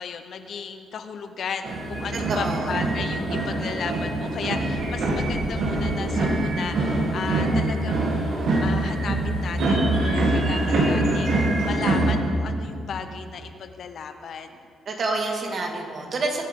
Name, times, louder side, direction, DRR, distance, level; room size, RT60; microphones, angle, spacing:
voice 1, 0.0-14.6, left 6 dB, 60° left, 8 dB, 0.9 m, -35 dB
sound 1, 1.6-12.1, right 2 dB, 70° right, 2.6 m, -24 dB
voice 2, 2.3-2.8 14.9-16.5, right 3 dB, 50° right, 1 dB, 2.1 m, -28 dB
22.0 x 8.2 x 3.8 m, 2.3 s
cardioid pair, 90°, 0 cm